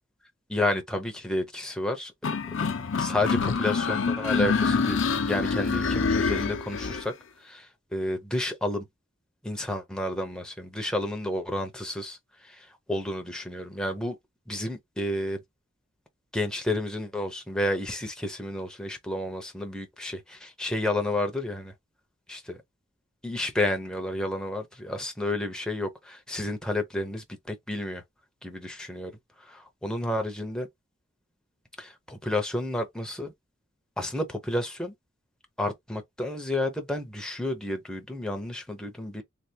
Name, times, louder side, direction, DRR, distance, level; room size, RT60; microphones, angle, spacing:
voice 1, 0.5-2.3 3.0-7.1 7.4-8.8 9.4-14.2 14.5-15.4 16.3-21.7 22.3-22.6 23.2-28.0 28.4-29.1 29.4-30.7 31.8-33.3 34.0-34.9 35.6-39.2, left 1 dB, 5° left, 0.7 m, -31 dB
sound 1, 2.2-7.0, left 5 dB, 70° left, 0.6 m, -26 dB
3.4 x 2.2 x 2.8 m
head